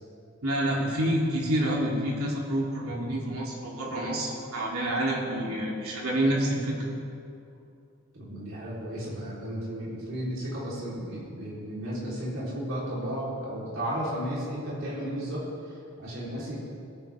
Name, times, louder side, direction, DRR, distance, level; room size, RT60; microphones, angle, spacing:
voice 1, 0.4-6.9, right 1 dB, 85° right, -3 dB, 3.1 m, -28 dB
voice 2, 8.1-16.6, equal, 65° right, -8 dB, 3.8 m, -34 dB
22.5 x 9.7 x 3.6 m, 2.5 s
head